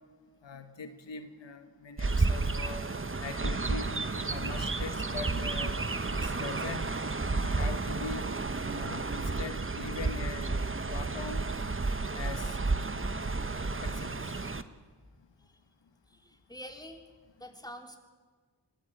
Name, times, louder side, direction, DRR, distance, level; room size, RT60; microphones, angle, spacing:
voice 1, 0.4-2.8 3.2-3.9 4.3-5.8 6.2-6.9 7.3-8.2 8.7-10.5 10.9-11.4 12.1-12.6 13.8-14.3, left 4 dB, 85° left, 8 dB, 1.2 m, -41 dB
Chirp tweet, 2.0-14.6, right 3 dB, 30° right, 1.1 m, -32 dB
voice 2, 16.1-17.0 17.4-18.0, equal, 10° left, 3 dB, 3.5 m, -46 dB
21.5 x 14.5 x 9.0 m, 1.5 s
cardioid pair, 40°, 43 cm